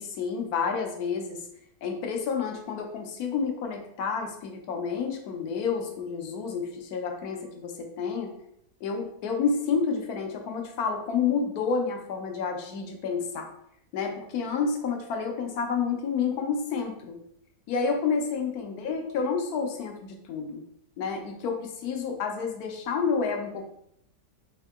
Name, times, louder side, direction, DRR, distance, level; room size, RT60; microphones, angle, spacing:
voice 1, 0.0-1.4 1.8-8.3 8.8-13.5 13.9-17.2 17.7-20.6 21.0-23.7, left 5 dB, 70° left, 3 dB, 1.1 m, -29 dB
3.6 x 2.8 x 3.5 m, 0.73 s
omnidirectional pair, 1.8 m